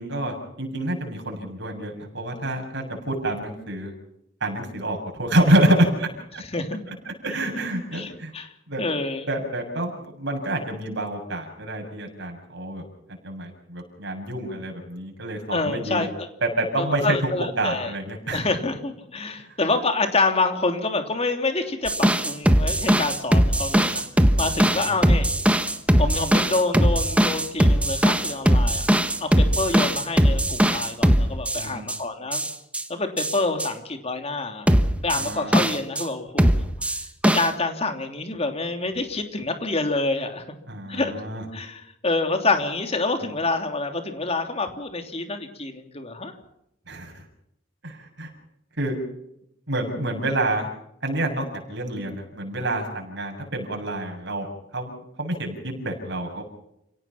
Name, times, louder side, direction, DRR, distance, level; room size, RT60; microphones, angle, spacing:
voice 1, 0.0-3.9 4.4-6.4 7.1-8.3 8.7-8.8 9.3-12.8 13.2-16.1 16.4-17.2 17.6-18.4 24.4-25.0 31.6-31.9 35.1-35.6 40.7-41.4 46.9-47.2 47.8-48.3 48.8-49.0 49.7-50.7 51.0-54.5 54.7-56.4, right 1 dB, 60° right, 2 dB, 7.3 m, -27 dB
voice 2, 6.4-6.8 7.9-8.5 8.8-9.2 15.5-16.3 16.8-17.9 18.3-24.0 24.4-25.3 26.0-28.9 29.2-32.5 32.9-34.7 35.0-37.0 37.2-40.4 40.9-41.1 41.5-46.3, left 3 dB, 30° left, 6 dB, 3.1 m, -27 dB
sound 1, 21.9-32.0 32.3-32.8 33.2-33.7 34.7-36.0 36.4-37.5, equal, 5° right, 1.4 m, -20 dB
30.0 x 17.5 x 5.9 m, 0.79 s
head